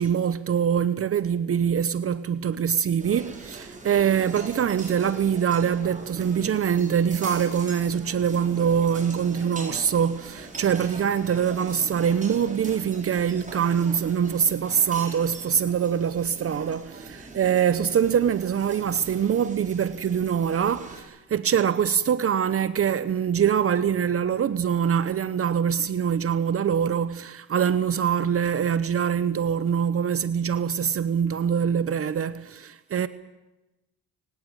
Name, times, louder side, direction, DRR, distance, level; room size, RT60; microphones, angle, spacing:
voice 1, 0.0-33.1, right 8 dB, 50° right, 1.0 m, -24 dB
sound 1, 3.0-21.0, right 2 dB, 25° right, 6.7 m, -42 dB
25.0 x 17.0 x 8.9 m
cardioid pair, 90°, 30 cm